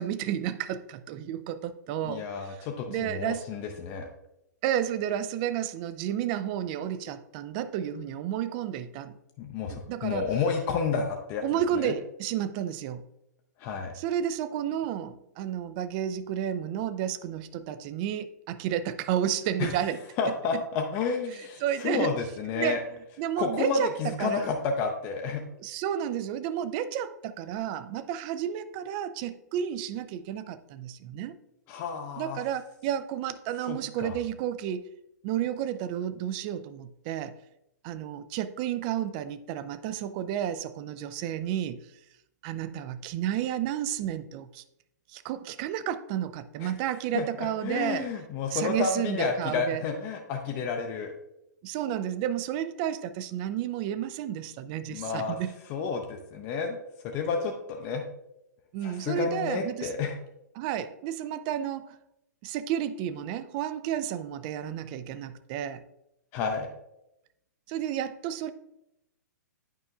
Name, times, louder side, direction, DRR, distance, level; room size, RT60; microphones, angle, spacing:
voice 1, 0.0-3.5 4.6-9.2 9.7-10.3 11.4-13.0 13.9-20.6 21.6-22.1 22.6-22.8 23.2-24.5 25.6-31.3 32.2-34.8 35.2-37.4 37.8-41.8 42.4-44.6 45.1-48.1 48.5-49.8 51.6-55.5 58.7-59.9 60.6-61.9 62.4-65.8 67.7-68.5, right 10 dB, 30° right, 13 dB, 0.3 m, -31 dB
voice 2, 2.0-4.0 9.4-11.4 11.8-11.9 13.6-13.9 19.6-19.7 20.2-22.8 23.4-25.4 31.7-32.4 33.7-34.1 46.6-46.7 47.1-51.1 54.9-55.4 55.7-56.8 57.0-58.0 58.8-60.1 66.3-66.7, left 5 dB, 25° left, 3 dB, 0.5 m, -30 dB
8.9 x 5.3 x 2.3 m, 0.85 s
figure-of-eight pair, 115°, 10 cm